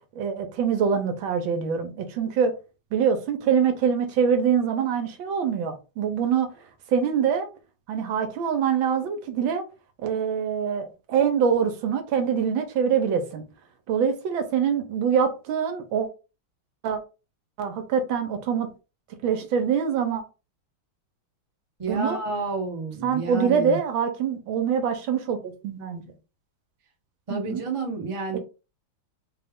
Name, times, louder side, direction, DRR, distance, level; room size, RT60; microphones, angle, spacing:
voice 1, 0.1-2.5 2.9-6.5 6.9-7.5 7.9-9.6 10.0-13.4 13.9-16.1 16.8-17.0 17.6-18.7 19.2-20.2 21.9-22.2 23.0-26.1 27.3-27.6 28.3-28.4, right 7 dB, 75° right, 1.4 m, -24 dB
voice 2, 21.8-23.8 27.3-28.4, right 3 dB, 35° right, 0.5 m, -30 dB
4.0 x 2.3 x 3.4 m
omnidirectional pair, 2.3 m